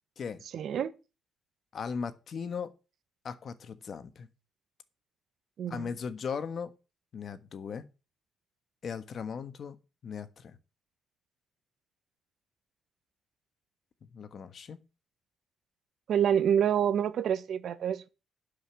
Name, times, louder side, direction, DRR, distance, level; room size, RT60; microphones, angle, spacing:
voice 1, 0.5-0.9 5.6-5.9 16.1-18.1, right 9 dB, 65° right, 1.1 m, -27 dB
voice 2, 1.7-2.7 3.2-4.3 5.7-6.7 7.1-7.9 8.8-9.8 10.0-10.6 14.0-14.8, left 6 dB, 55° left, 1.3 m, -38 dB
11.5 x 5.3 x 7.0 m
cardioid pair, 90°, 0 cm